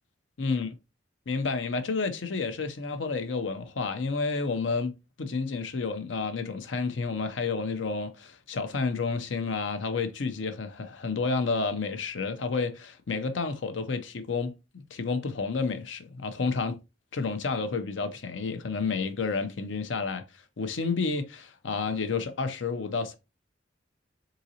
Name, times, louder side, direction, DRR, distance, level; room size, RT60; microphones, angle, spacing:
voice 1, 0.4-0.7 1.3-14.5 14.9-16.8 17.1-20.2 20.6-23.2, left 4 dB, 85° left, 0.7 m, -30 dB
3.9 x 3.9 x 2.8 m
head